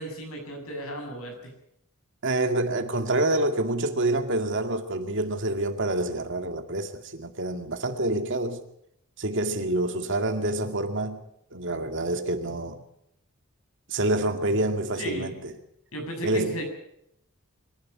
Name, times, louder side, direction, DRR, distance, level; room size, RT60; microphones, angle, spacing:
voice 1, 0.0-1.5 15.0-15.3 15.9-16.6, right 1 dB, 70° left, 6.8 m, -34 dB
voice 2, 2.2-8.6 9.2-11.2 11.5-12.8 13.9-15.5 16.2-16.6, right 2 dB, 55° right, 2.2 m, -27 dB
25.0 x 11.5 x 9.7 m
head